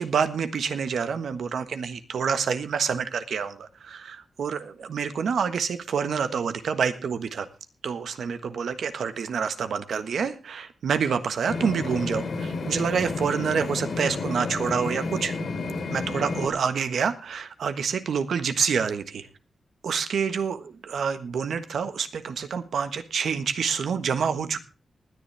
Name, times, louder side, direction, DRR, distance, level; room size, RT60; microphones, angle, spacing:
voice 1, 0.0-7.5 7.8-15.4 15.9-19.3 19.8-24.6, right 6 dB, 85° right, 10 dB, 1.3 m, -27 dB
sound 1, 11.5-16.5, left 3 dB, 70° left, 3.2 m, -31 dB
19.5 x 10.0 x 3.3 m, 0.32 s
wide cardioid pair, 105°, 0 cm